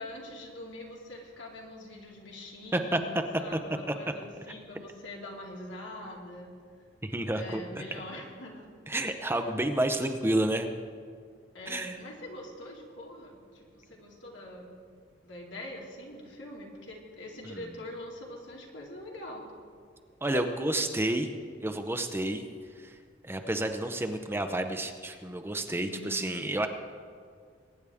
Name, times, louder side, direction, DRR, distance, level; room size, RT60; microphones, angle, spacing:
voice 1, 0.0-6.5 7.3-8.7 11.5-14.7 15.2-19.5 25.8-26.7, left 1 dB, 75° left, -2 dB, 2.4 m, -44 dB
voice 2, 7.0-7.6 8.9-10.7 11.7-12.0 17.5-17.6 20.2-21.3 21.6-22.5 22.8-23.0 23.2-26.7, right 1 dB, 15° right, 6 dB, 0.7 m, -30 dB
22.5 x 9.8 x 3.6 m, 2.1 s
head